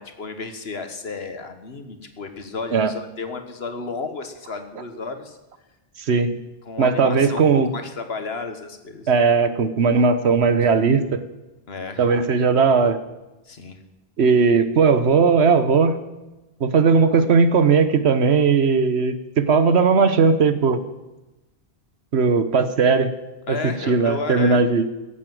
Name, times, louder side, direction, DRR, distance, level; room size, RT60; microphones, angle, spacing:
voice 1, 0.0-5.4 6.6-9.1 11.7-12.1 13.5-13.8 23.5-24.9, left 4 dB, 75° left, 7 dB, 1.6 m, -32 dB
voice 2, 6.0-6.4 6.8-7.7 9.1-11.2 12.0-13.0 14.2-16.0 16.6-20.8 22.1-23.1 23.5-24.9, right 5 dB, 85° right, 11 dB, 1.3 m, -18 dB
16.5 x 8.5 x 7.7 m, 1.0 s
omnidirectional pair, 1.1 m